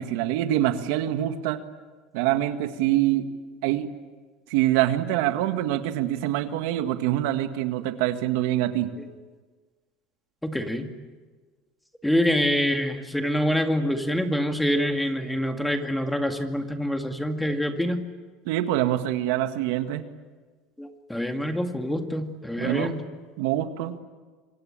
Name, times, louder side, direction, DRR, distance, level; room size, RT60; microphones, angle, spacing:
voice 1, 0.0-1.6 2.1-3.3 3.6-3.9 4.5-8.9 18.4-20.0 22.6-22.9 23.4-23.9, right 13 dB, 75° right, 8 dB, 1.8 m, -25 dB
voice 2, 10.4-10.9 12.0-18.0 20.8-23.0, equal, 5° left, 5 dB, 2.2 m, -26 dB
26.5 x 24.0 x 8.9 m, 1.4 s
supercardioid pair, 125°, 0 cm